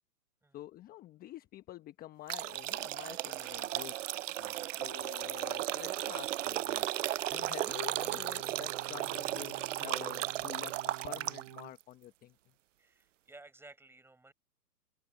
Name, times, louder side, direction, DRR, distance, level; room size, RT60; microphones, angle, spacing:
voice 1, 0.5-3.9 4.4-6.8 7.3-10.8 11.0-12.3, left 14 dB, 20° left, 1.2 m, -48 dB
sound 1, 2.3-11.6, right 14 dB, 50° right, 0.5 m, -35 dB
voice 2, 4.4-4.9 12.8-14.3, right 2 dB, 5° right, 5.4 m, -56 dB
Wind instrument woodwind instrument, 4.7-8.3, left 10 dB, 60° left, 5.6 m, -64 dB
sound 2, 7.7-11.8, right 23 dB, 30° right, 0.9 m, -51 dB
open air
hypercardioid pair, 125°, 49 cm